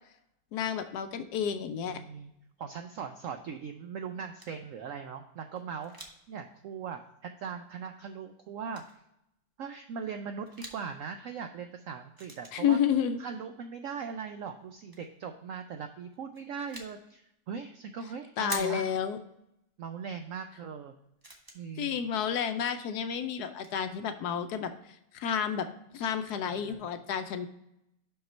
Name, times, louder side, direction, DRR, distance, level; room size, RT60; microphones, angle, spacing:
voice 1, 0.5-2.0 12.5-13.2 18.4-19.2 21.8-24.7 25.1-25.7 25.9-27.5, left 8 dB, 70° left, 9 dB, 1.0 m, -30 dB
voice 2, 1.9-2.3 2.6-8.8 9.6-12.8 13.2-18.9 19.8-20.9 21.5-22.0 26.5-26.9, right 6 dB, 80° right, 7 dB, 0.7 m, -40 dB
sound 1, 4.4-4.7 5.6-6.3 6.6-6.7 7.7-7.8 8.7-9.0 10.4-10.9 12.2-12.8 14.6-15.1 16.1-17.0 18.5-19.1 20.2-20.3 20.8-20.9 21.2-22.2 23.2-23.3 23.5-23.8, right 1 dB, 20° right, 0.6 m, -45 dB
5.8 x 5.5 x 4.2 m, 0.81 s
omnidirectional pair, 1.9 m